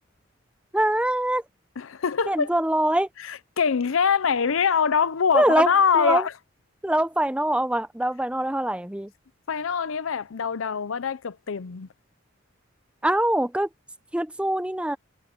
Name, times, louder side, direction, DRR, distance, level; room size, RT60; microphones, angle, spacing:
voice 1, 0.7-1.4 2.3-3.1 5.3-6.3 6.8-9.1 13.0-13.7 14.1-15.0, right 1 dB, 5° right, 0.6 m, -23 dB
voice 2, 1.8-2.5 3.2-6.3 9.5-11.9, left 6 dB, 90° left, 0.6 m, -24 dB
head